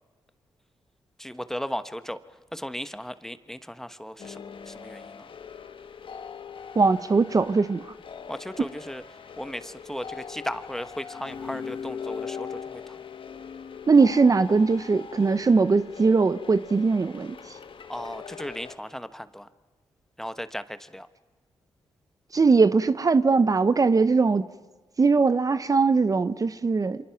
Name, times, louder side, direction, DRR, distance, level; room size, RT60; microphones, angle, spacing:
voice 1, 1.2-2.2 2.5-5.2 8.3-9.0 9.4-13.0 17.9-19.5 20.2-21.1, equal, 5° left, 12 dB, 1.1 m, -36 dB
sound 1, 4.2-18.8, left 6 dB, 55° left, 1.4 m, -41 dB
voice 2, 6.8-7.8 13.9-17.4 22.3-24.4 25.0-27.0, right 4 dB, 35° right, 13 dB, 0.8 m, -20 dB
29.0 x 26.0 x 5.9 m, 1.4 s
cardioid pair, 80°, 10 cm